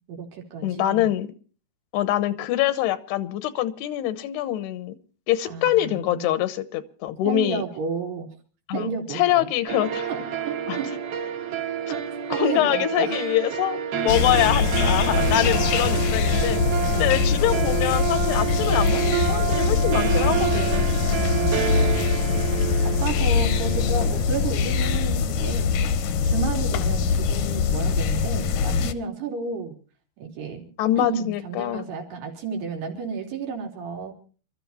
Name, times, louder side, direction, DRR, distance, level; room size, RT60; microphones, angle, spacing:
voice 1, 0.1-1.1 5.5-6.3 7.3-8.3 8.7-9.5 10.1-10.9 11.9-12.0 12.3-13.2 14.0-14.1 15.4-16.0 16.9-17.3 21.0-21.6 22.8-25.9 26.2-29.8 30.2-30.7 31.0-34.1, right 5 dB, 90° right, 2 dB, 5.4 m, -32 dB
voice 2, 0.6-1.3 1.9-5.0 5.3-7.6 8.7-10.1 10.7-10.8 12.3-16.6 17.0-21.0 30.8-31.9, left 13 dB, 85° left, 14 dB, 3.1 m, -24 dB
sound 1, 9.7-25.0, right 9 dB, 70° right, 4.1 m, -28 dB
sound 2, 14.1-28.9, left 6 dB, 70° left, 1.9 m, -23 dB
28.5 x 14.0 x 2.8 m, 0.40 s
omnidirectional pair, 4.6 m